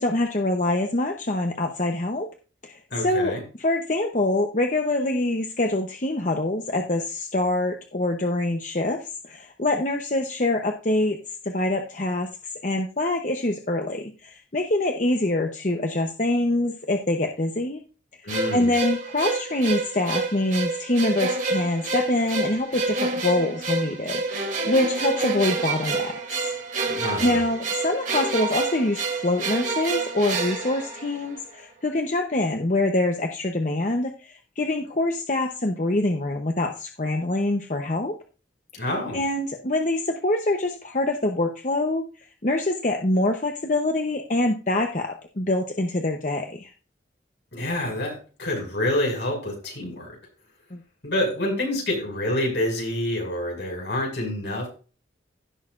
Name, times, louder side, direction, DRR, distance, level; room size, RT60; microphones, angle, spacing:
voice 1, 0.0-2.3 2.6-11.2 11.4-12.3 12.6-17.8 18.5-26.5 26.9-38.1 38.7-38.8 39.1-42.0 42.4-46.7 50.7-50.8, left 2 dB, 40° left, 4 dB, 0.9 m, -25 dB
voice 2, 2.9-3.4 18.2-18.7 26.9-27.4 38.7-39.2 47.5-50.1 51.0-54.7, left 1 dB, 70° left, 0 dB, 6.0 m, -27 dB
sound 1, 18.3-31.5, right 3 dB, 45° right, 2.8 m, -28 dB
16.5 x 6.6 x 2.5 m, 0.35 s
head